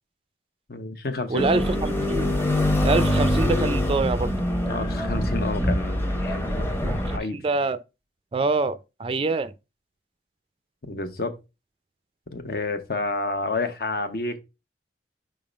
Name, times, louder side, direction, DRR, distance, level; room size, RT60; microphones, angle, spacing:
voice 1, 0.7-1.5 4.6-7.4 10.8-11.4 12.3-14.4, left 3 dB, 60° left, 0.9 m, -30 dB
voice 2, 1.3-2.3 2.8-4.3 6.8-7.8 8.3-9.5, right 3 dB, 30° right, 0.4 m, -25 dB
sound 1, 1.4-7.2, left 1 dB, 15° left, 0.8 m, -24 dB
5.3 x 3.6 x 5.1 m
head